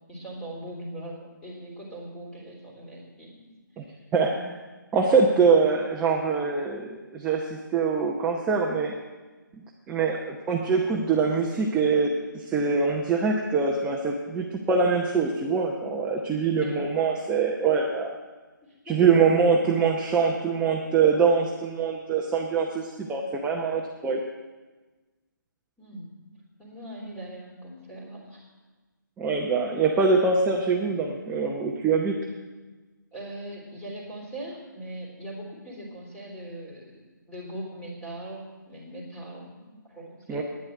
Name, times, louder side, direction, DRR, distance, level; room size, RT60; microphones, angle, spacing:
voice 1, 0.1-3.4 3.9-4.0 16.6-16.9 18.6-19.0 25.8-26.1 26.6-28.5 33.1-40.4, right 1 dB, 10° left, -3 dB, 3.6 m, -40 dB
voice 2, 4.1-4.6 4.9-8.9 9.9-18.2 18.9-24.2 29.2-32.2 40.3-40.4, right 5 dB, 10° right, -1 dB, 0.8 m, -24 dB
10.0 x 9.7 x 9.3 m, 1.3 s
figure-of-eight pair, 150°, 11 cm